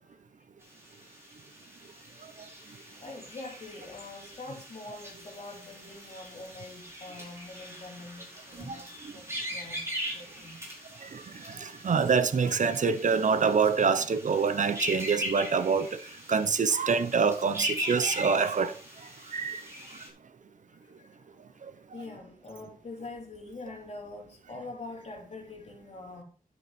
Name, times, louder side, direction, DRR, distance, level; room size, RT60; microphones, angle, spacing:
sound 1, 0.6-20.1, equal, 15° right, 4.8 m, -40 dB
voice 1, 2.7-10.6 20.8-21.1 21.9-26.2, left 2 dB, 45° left, 3.7 m, -44 dB
voice 2, 11.0-16.0 16.3-18.7 19.3-19.6, right 5 dB, 55° right, 0.8 m, -26 dB
11.0 x 9.5 x 4.3 m
wide cardioid pair, 150°, 15 cm